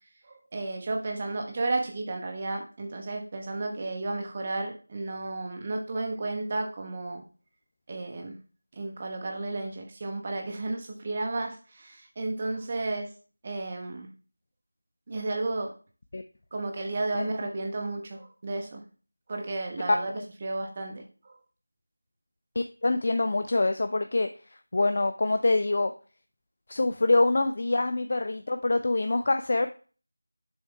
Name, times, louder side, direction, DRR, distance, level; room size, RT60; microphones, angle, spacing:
voice 1, 0.2-7.2 7.9-8.3 8.7-13.1 13.4-14.1 15.1-15.7 16.5-18.8 19.3-20.1 20.4-21.4, right 2 dB, 25° right, 3 dB, 1.1 m, -33 dB
voice 2, 22.6-24.3 24.7-25.9 26.7-29.7, left 2 dB, 40° left, 8 dB, 0.4 m, -25 dB
7.5 x 7.1 x 2.2 m, 0.37 s
figure-of-eight pair, 170°, 0 cm